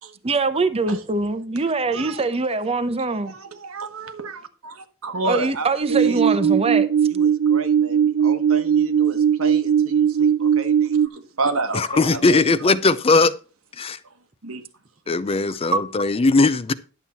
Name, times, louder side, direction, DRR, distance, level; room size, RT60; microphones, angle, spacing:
voice 1, 0.2-3.3 5.2-6.9, right 3 dB, 30° right, 0.7 m, -23 dB
voice 2, 3.2-6.6 7.1-12.4 14.4-14.6, right 3 dB, 75° right, 1.3 m, -31 dB
sound 1, 5.8-11.1, right 8 dB, 60° right, 0.4 m, -19 dB
voice 3, 11.7-13.3 13.8-14.0 15.1-16.7, left 3 dB, 25° left, 0.4 m, -19 dB
11.0 x 7.3 x 4.2 m
head